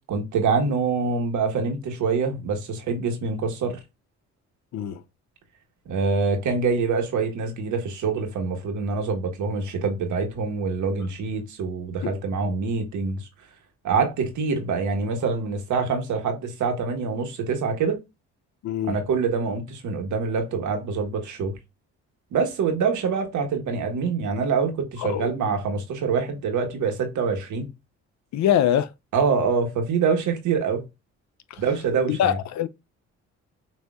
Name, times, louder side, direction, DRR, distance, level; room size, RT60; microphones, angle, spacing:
voice 1, 0.1-3.8 5.9-13.3 13.8-18.0 18.9-21.6 22.3-27.7 29.1-30.8 31.6-32.4, right 5 dB, 75° right, 1.5 m, -25 dB
voice 2, 18.6-19.0 25.0-25.3 28.3-28.9 31.5-31.6 32.0-32.7, left 10 dB, 65° left, 0.6 m, -23 dB
6.3 x 2.7 x 2.4 m
cardioid pair, 90°, 30 cm